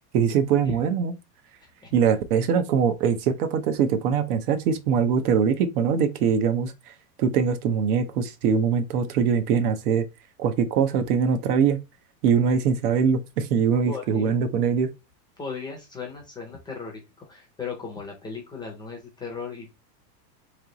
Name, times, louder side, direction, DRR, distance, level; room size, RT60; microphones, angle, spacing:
voice 1, 0.1-1.1 1.9-6.9 7.2-10.0 10.4-11.8 12.2-14.9, right 6 dB, 60° right, 0.8 m, -22 dB
voice 2, 1.6-1.9 13.9-14.4 15.4-19.8, left 5 dB, 10° left, 0.5 m, -37 dB
3.3 x 2.9 x 3.9 m
supercardioid pair, 145°, 50 cm